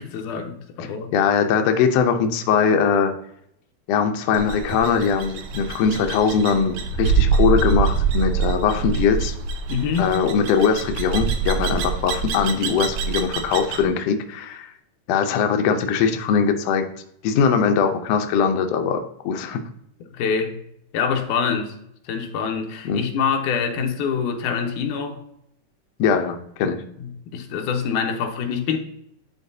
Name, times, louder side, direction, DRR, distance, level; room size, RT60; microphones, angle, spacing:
voice 1, 0.0-1.1 9.7-10.1 20.1-20.6 20.9-21.8 22.0-25.2 27.0-28.8, left 6 dB, 90° left, 2.4 m, -25 dB
voice 2, 1.1-3.1 3.9-9.4 10.0-14.7 15.1-16.9 17.2-19.6 22.8-23.0 26.0-26.8, left 6 dB, 75° left, 1.6 m, -21 dB
sound 1, 4.3-13.8, right 5 dB, 75° right, 1.3 m, -25 dB
10.5 x 3.9 x 2.7 m
omnidirectional pair, 3.5 m